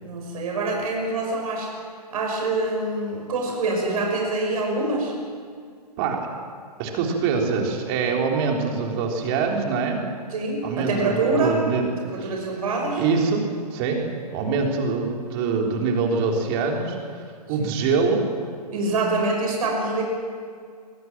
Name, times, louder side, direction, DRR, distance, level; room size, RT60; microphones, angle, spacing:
voice 1, 0.0-1.7 2.1-5.1 10.3-11.6 12.0-13.0 17.6-17.7 18.7-20.0, right 3 dB, 55° right, 0 dB, 6.1 m, -25 dB
voice 2, 6.8-10.0 10.6-12.3 13.0-13.4 13.7-14.0 14.3-17.0 17.5-18.2, right 4 dB, 35° right, 1 dB, 3.9 m, -24 dB
23.5 x 17.0 x 7.7 m, 2.1 s
hypercardioid pair, 130°, 21 cm